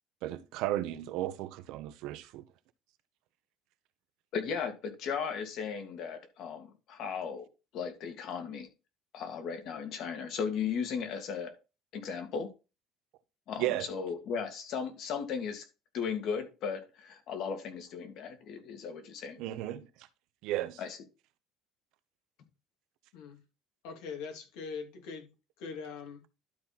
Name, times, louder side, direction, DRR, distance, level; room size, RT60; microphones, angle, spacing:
voice 1, 0.2-2.5 13.6-13.9 19.4-20.1 20.4-20.8, right 14 dB, 75° right, 0.9 m, -34 dB
voice 2, 4.3-7.5 7.7-8.7 9.1-11.5 11.9-12.5 13.5-15.6 15.9-19.4 20.8-21.0, left 6 dB, 55° left, 2.2 m, -36 dB
voice 3, 23.8-25.3 25.6-26.2, left 5 dB, 85° left, 2.7 m, -42 dB
12.0 x 4.4 x 4.2 m
cardioid pair, 140°, 0 cm